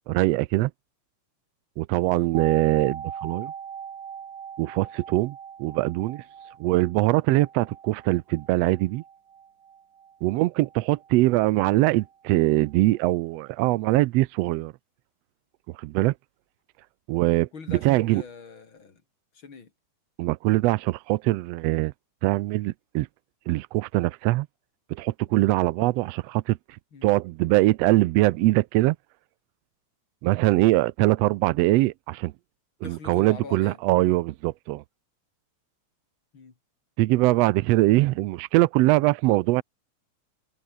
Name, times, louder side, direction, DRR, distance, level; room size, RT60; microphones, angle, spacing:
voice 1, 0.1-0.7 1.8-3.5 4.6-6.2 6.6-9.0 10.2-14.7 15.8-16.1 17.1-18.2 20.2-21.9 22.2-23.1 23.5-24.5 24.9-26.6 27.0-29.0 30.2-32.3 32.8-34.8 37.0-39.6, right 18 dB, 80° right, 1.5 m, -22 dB
voice 2, 2.0-2.3 17.5-19.0 19.3-19.7 26.9-27.2 32.8-33.8 36.3-36.5, left 5 dB, 45° left, 3.6 m, -43 dB
sound 1, 2.3-12.1 12.3-12.4, right 7 dB, 45° right, 1.9 m, -40 dB
omnidirectional pair, 3.4 m